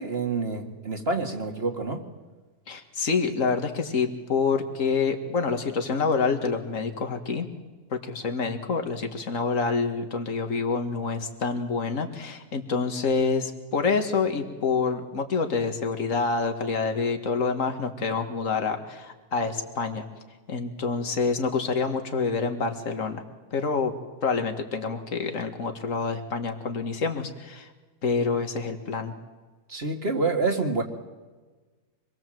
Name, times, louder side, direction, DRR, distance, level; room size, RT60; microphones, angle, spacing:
voice 1, 0.0-2.0 29.7-30.8, right 3 dB, 40° right, 4 dB, 2.3 m, -27 dB
voice 2, 2.7-7.5 7.9-20.1 20.5-23.2 23.5-23.9 24.2-27.7 28.0-29.1, left 4 dB, 60° left, 5 dB, 2.3 m, -27 dB
26.0 x 21.0 x 7.8 m, 1.3 s
omnidirectional pair, 1.6 m